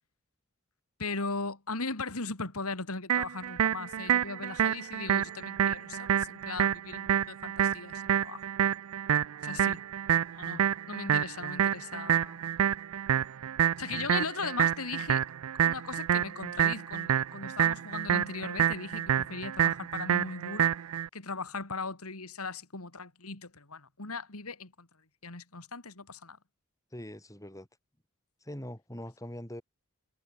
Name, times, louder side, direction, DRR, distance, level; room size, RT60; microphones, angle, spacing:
voice 1, 1.0-8.4 9.4-9.8 10.3-12.4 13.8-15.2 15.6-20.7 21.1-24.9 25.2-26.4, left 4 dB, 85° left, 3.1 m, -38 dB
sound 1, 3.1-21.1, right 9 dB, 75° right, 0.4 m, -28 dB
voice 2, 26.9-27.7 28.4-29.6, left 1 dB, 15° left, 7.7 m, -42 dB
head